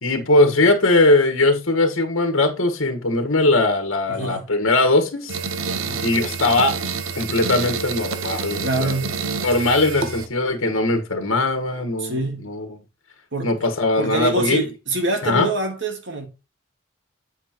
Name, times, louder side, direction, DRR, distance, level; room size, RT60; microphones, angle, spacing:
voice 1, 0.0-5.4 6.0-6.8 7.2-9.0 9.4-12.7 13.4-14.6 15.2-15.5, left 2 dB, 75° left, 1.7 m, -20 dB
voice 2, 4.1-4.5 5.8-6.0 8.6-9.2 12.0-12.5 13.3-13.7 14.0-16.3, right 2 dB, 60° right, 2.0 m, -25 dB
sound 1, 5.3-10.3, right 5 dB, 85° right, 0.9 m, -28 dB
8.4 x 7.9 x 3.1 m
head